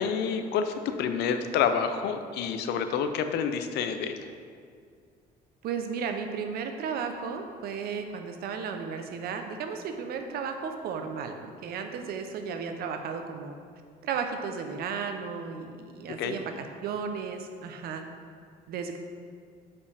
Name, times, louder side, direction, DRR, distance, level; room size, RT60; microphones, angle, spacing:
voice 1, 0.0-4.3 16.2-16.4, left 7 dB, 80° left, 8 dB, 0.5 m, -28 dB
voice 2, 5.6-13.6 14.0-18.0 18.7-19.0, right 6 dB, 65° right, 6 dB, 0.7 m, -34 dB
7.0 x 5.1 x 3.4 m, 2.2 s
cardioid pair, 110°, 17 cm